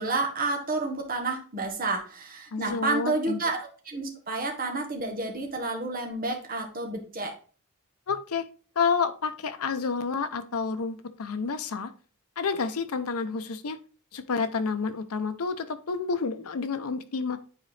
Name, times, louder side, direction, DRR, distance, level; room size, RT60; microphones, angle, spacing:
voice 1, 0.0-7.3, right 3 dB, 40° right, 1.3 m, -30 dB
voice 2, 2.5-3.4 8.1-8.4 8.8-11.9 12.4-13.8 14.1-17.4, left 5 dB, 80° left, 0.6 m, -29 dB
9.3 x 4.0 x 3.3 m
head